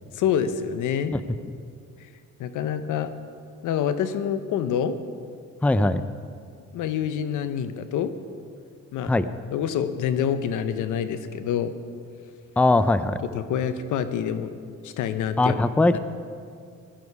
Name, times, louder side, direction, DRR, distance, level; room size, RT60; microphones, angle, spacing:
voice 1, 0.1-1.2 2.4-3.1 3.6-5.0 6.7-8.1 8.9-9.1 9.5-11.7 13.3-14.5 14.8-15.6 15.9-16.0, left 8 dB, 85° left, 11 dB, 0.9 m, -26 dB
voice 2, 5.6-6.0 9.1-9.3 12.6-13.2 15.4-16.0, left 2 dB, 5° left, 12 dB, 0.5 m, -20 dB
16.0 x 11.5 x 4.7 m, 2.2 s
cardioid pair, 90°, 30 cm